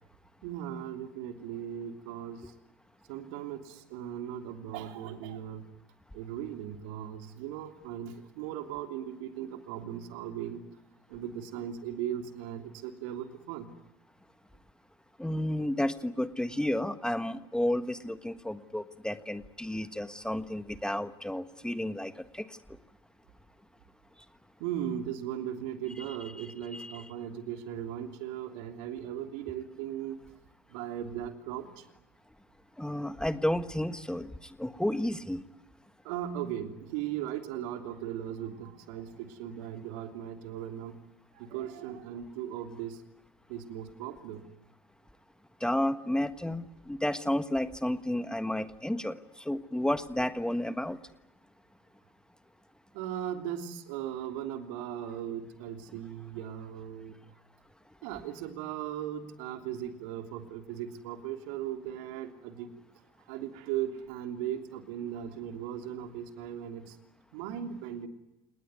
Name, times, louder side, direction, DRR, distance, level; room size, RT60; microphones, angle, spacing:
voice 1, 0.4-2.5 3.1-5.6 6.1-10.6 11.1-13.7 24.6-30.2 30.7-31.9 36.0-41.0 41.3-43.0 43.5-44.4 52.9-57.2 58.0-62.7 63.2-67.0 67.3-68.1, right 10 dB, 65° right, 5 dB, 3.2 m, -38 dB
voice 2, 15.2-22.8 26.4-27.1 32.8-35.4 45.6-51.0, left 1 dB, 5° left, 10 dB, 1.5 m, -32 dB
28.5 x 20.0 x 9.7 m, 0.96 s
hypercardioid pair, 80°, 17 cm